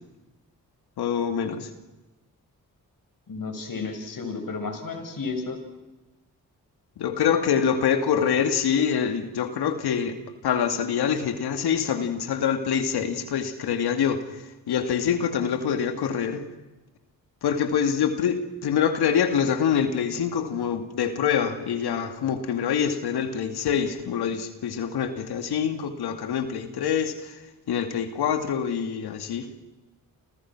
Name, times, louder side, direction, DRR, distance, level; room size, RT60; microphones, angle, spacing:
voice 1, 1.0-1.7 7.0-10.2 10.4-16.5 17.4-27.4 27.7-29.5, left 7 dB, 85° left, 8 dB, 2.6 m, -25 dB
voice 2, 3.3-5.6, left 4 dB, 60° left, 6 dB, 6.7 m, -32 dB
29.5 x 29.0 x 6.2 m, 1.1 s
supercardioid pair, 45°, 38 cm